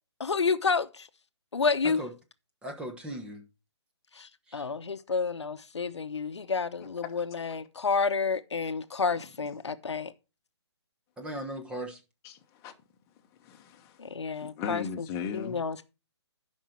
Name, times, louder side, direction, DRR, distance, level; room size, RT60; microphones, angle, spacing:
voice 1, 0.2-1.1 1.5-2.0 4.2-10.1 14.0-15.0 15.3-15.8, left 5 dB, 75° left, 0.9 m, -30 dB
voice 2, 2.6-3.4 4.5-4.7 11.2-12.0, right 1 dB, 5° right, 1.1 m, -38 dB
voice 3, 12.2-12.7 13.4-14.0 14.4-15.6, left 6 dB, 20° left, 1.1 m, -37 dB
11.5 x 5.5 x 4.4 m
figure-of-eight pair, 145°, 15 cm